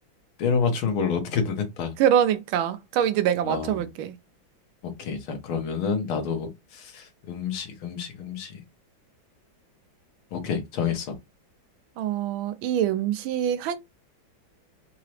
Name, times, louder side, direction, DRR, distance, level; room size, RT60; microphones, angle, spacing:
voice 1, 0.4-1.9 3.4-3.9 4.8-8.6 10.3-11.1, left 6 dB, 85° left, 1.9 m, -28 dB
voice 2, 2.0-4.1 12.0-13.8, right 10 dB, 90° right, 1.4 m, -24 dB
4.7 x 2.9 x 3.2 m
omnidirectional pair, 2.2 m